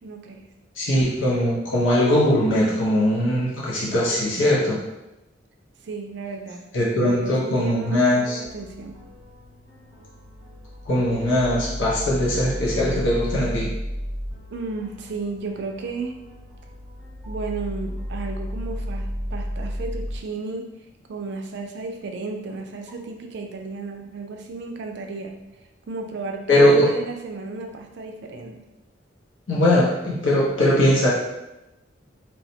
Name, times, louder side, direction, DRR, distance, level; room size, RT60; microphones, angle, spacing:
voice 1, 0.0-0.4 5.8-6.7 6.9-9.0 14.5-16.2 17.3-20.7 21.1-25.3 25.9-28.6, right 3 dB, 60° right, 3 dB, 0.4 m, -33 dB
voice 2, 0.8-4.8 6.7-8.4 10.8-13.7 26.5-26.9 29.5-31.1, left 1 dB, 85° left, -5 dB, 0.8 m, -20 dB
sound 1, 8.5-20.2, equal, 10° left, 0.8 m, -33 dB
3.1 x 2.0 x 2.7 m, 0.93 s
head